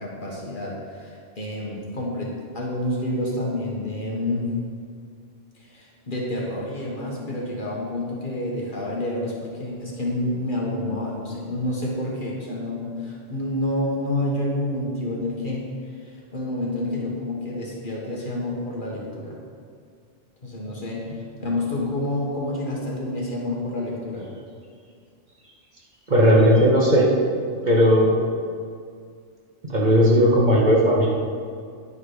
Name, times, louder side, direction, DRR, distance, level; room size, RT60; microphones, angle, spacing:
voice 1, 0.0-4.5 5.6-19.4 20.4-24.3, left 1 dB, 45° left, -3 dB, 1.4 m, -29 dB
voice 2, 26.1-27.1 27.6-28.2 29.7-31.1, equal, 40° right, -4 dB, 1.3 m, -16 dB
9.9 x 4.9 x 4.8 m, 2.2 s
omnidirectional pair, 1.2 m